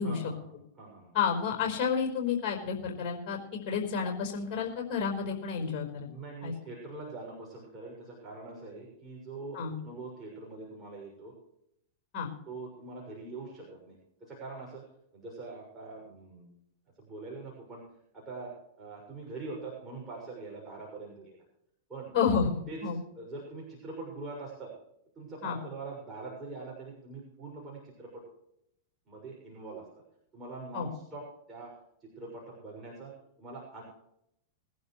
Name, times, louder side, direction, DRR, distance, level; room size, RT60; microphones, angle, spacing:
voice 1, 0.0-1.1 6.0-9.6 9.8-11.3 12.5-14.8 15.1-16.6 17.0-17.8 18.1-18.5 18.8-21.4 21.9-22.1 22.7-22.8 23.1-24.7 25.1-28.2 29.1-29.8 30.3-31.7 32.0-33.8, right 3 dB, 20° right, -3 dB, 6.6 m, -43 dB
voice 2, 1.1-6.1 6.4-6.5 9.5-9.7 12.1-12.3 22.1-22.5 22.8-23.0 25.4-25.6 30.7-30.9, left 6 dB, 40° left, 2 dB, 4.8 m, -30 dB
22.0 x 11.5 x 3.3 m, 0.77 s
hypercardioid pair, 120°, 0 cm